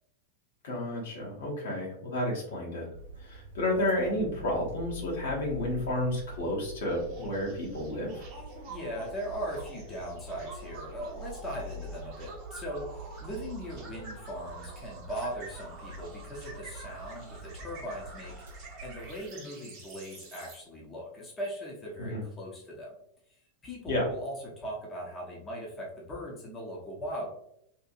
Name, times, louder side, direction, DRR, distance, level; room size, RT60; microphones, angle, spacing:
voice 1, 0.6-2.9 3.2-8.3 22.0-22.2 23.9-24.1, left 1 dB, 60° left, -3 dB, 1.0 m, -31 dB
sound 1, 2.9-19.3, right 1 dB, 65° right, 0.5 m, -45 dB
sound 2, 6.8-20.6, right 3 dB, 40° right, 0.9 m, -47 dB
voice 2, 8.7-22.9 23.6-27.3, equal, 20° left, -4 dB, 0.7 m, -39 dB
2.8 x 2.5 x 2.4 m, 0.73 s
figure-of-eight pair, 90°, 0 cm